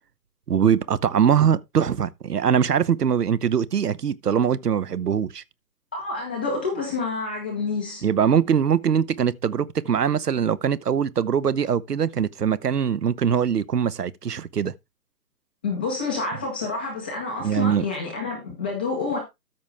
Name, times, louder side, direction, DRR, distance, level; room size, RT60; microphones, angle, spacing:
voice 1, 0.5-5.4 8.0-14.7 17.4-17.8, right 8 dB, 65° right, 1.0 m, -22 dB
voice 2, 5.9-8.0 15.6-19.2, left 4 dB, 5° left, 0.7 m, -28 dB
13.0 x 6.2 x 3.3 m
figure-of-eight pair, 150°, 50 cm